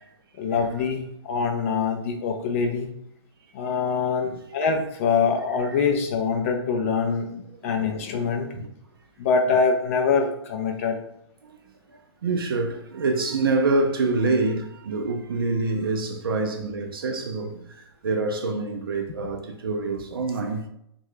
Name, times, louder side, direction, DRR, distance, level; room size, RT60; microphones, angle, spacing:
voice 1, 0.4-2.9 3.5-8.5 9.2-11.0, left 5 dB, 30° left, 0.4 m, -24 dB
voice 2, 11.9-20.7, right 3 dB, 55° right, 0.5 m, -26 dB
3.5 x 2.2 x 3.1 m
figure-of-eight pair, 120°, 14 cm